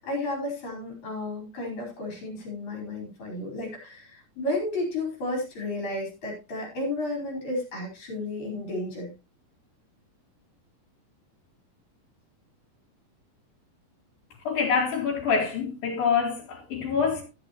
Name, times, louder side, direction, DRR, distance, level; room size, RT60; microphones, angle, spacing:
voice 1, 0.0-9.1, left 2 dB, 55° left, 6.1 m, -32 dB
voice 2, 14.5-17.2, left 6 dB, 80° left, 4.2 m, -26 dB
13.0 x 11.0 x 3.1 m
omnidirectional pair, 4.0 m